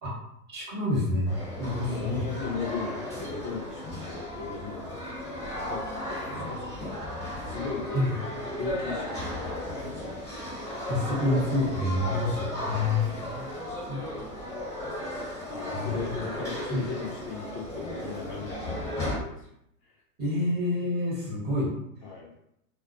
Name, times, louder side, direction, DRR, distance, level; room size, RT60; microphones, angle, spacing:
voice 1, 0.5-2.2 6.3-6.8 7.9-8.1 10.9-12.3 12.6-13.4 13.9-14.0 15.7-16.1 16.7-16.8 20.2-21.7, left 2 dB, 20° right, -6 dB, 1.0 m, -28 dB
sound 1, 1.2-19.2, left 1 dB, 5° left, 0.9 m, -35 dB
voice 2, 1.7-10.3 12.0-12.2 12.6-13.3 15.5-19.4 22.0-22.3, left 5 dB, 35° left, -5 dB, 0.5 m, -38 dB
2.3 x 2.1 x 2.5 m, 0.77 s
hypercardioid pair, 115°, 46 cm